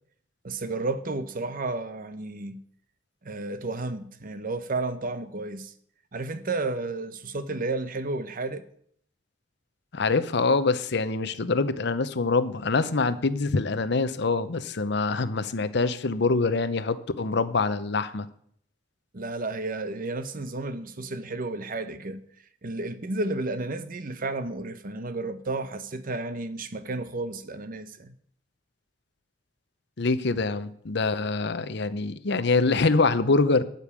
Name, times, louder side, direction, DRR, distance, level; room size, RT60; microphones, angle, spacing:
voice 1, 0.4-2.6 3.2-5.7 6.1-8.6 19.1-22.2 22.6-28.1, right 2 dB, 50° right, 0.8 m, -32 dB
voice 2, 9.9-18.3 30.0-33.6, left 3 dB, 65° left, 0.7 m, -25 dB
12.0 x 5.3 x 8.3 m
head